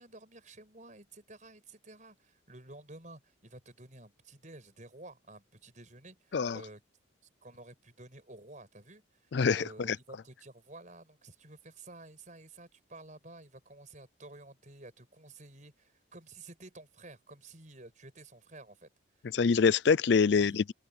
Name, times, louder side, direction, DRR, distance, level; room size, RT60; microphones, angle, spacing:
voice 1, 0.0-6.8 7.4-18.9 20.3-20.6, right 2 dB, 40° right, 5.7 m, -52 dB
voice 2, 9.3-10.0 19.3-20.7, left 5 dB, 60° left, 0.4 m, -25 dB
open air
head